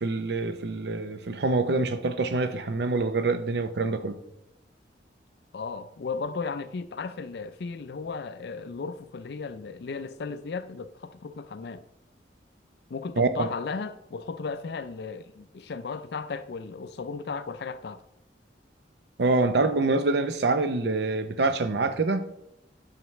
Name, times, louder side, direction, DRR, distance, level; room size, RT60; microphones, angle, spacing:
voice 1, 0.0-4.2 13.2-13.5 19.2-22.3, right 3 dB, 65° right, 0.6 m, -25 dB
voice 2, 5.5-11.8 12.9-18.0, left 4 dB, 65° left, 0.4 m, -35 dB
9.0 x 5.8 x 3.1 m
head